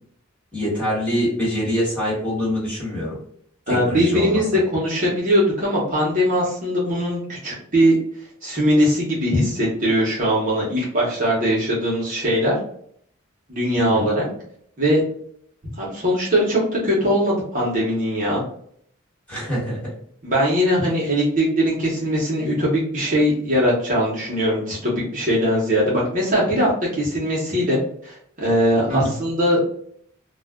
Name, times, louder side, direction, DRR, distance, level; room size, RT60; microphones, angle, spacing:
voice 1, 0.5-3.2 3.7-4.4 13.8-14.1 19.3-19.9 28.9-29.1, equal, 5° left, -8 dB, 1.3 m, -24 dB
voice 2, 3.7-8.0 8.4-12.6 13.5-14.3 14.8-15.0 15.8-18.4 20.2-29.6, equal, 40° right, -6 dB, 0.8 m, -20 dB
2.3 x 2.2 x 3.5 m, 0.65 s
head